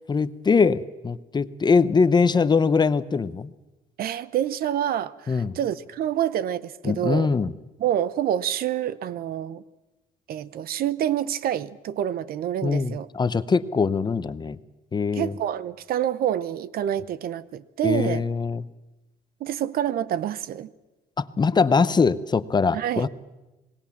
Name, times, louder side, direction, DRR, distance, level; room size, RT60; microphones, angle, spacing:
voice 1, 0.1-3.5 5.3-5.5 6.8-7.5 12.6-14.6 14.9-15.3 17.8-18.6 21.2-23.1, left 5 dB, 25° left, 15 dB, 0.8 m, -22 dB
voice 2, 4.0-7.3 7.8-9.6 10.3-13.1 15.1-18.2 19.4-20.7 22.7-23.1, right 10 dB, 65° right, 18 dB, 0.9 m, -27 dB
26.5 x 19.5 x 7.3 m, 1.1 s
cardioid pair, 110°, 17 cm